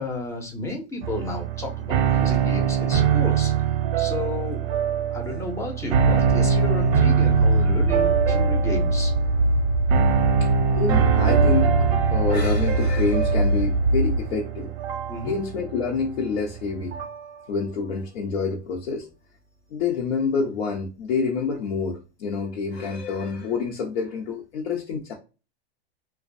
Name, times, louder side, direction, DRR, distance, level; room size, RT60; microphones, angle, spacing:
voice 1, 0.0-3.5 4.0-4.7 5.1-9.1 15.1-15.3, left 2 dB, 10° left, 0.5 m, -32 dB
sound 1, 1.0-17.3, right 10 dB, 40° right, 0.6 m, -24 dB
sound 2, 5.9-14.2, right 1 dB, 85° right, 0.5 m, -22 dB
voice 2, 10.8-14.7 15.2-16.9 17.5-19.1 19.7-25.1, left 5 dB, 70° left, 0.7 m, -27 dB
2.4 x 2.2 x 2.4 m
hypercardioid pair, 130°, 32 cm